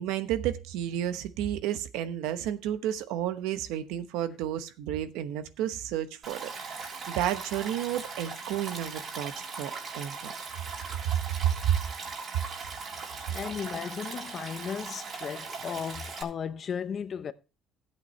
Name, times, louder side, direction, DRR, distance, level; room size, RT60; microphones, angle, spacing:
voice 1, 0.0-10.3 11.0-11.8, right 11 dB, 85° right, 1.0 m, -31 dB
Stream, 6.2-16.2, right 4 dB, 50° right, 3.4 m, -39 dB
voice 2, 13.0-17.3, left 7 dB, 45° left, 0.9 m, -36 dB
13.5 x 8.6 x 3.2 m
cardioid pair, 110°, 0 cm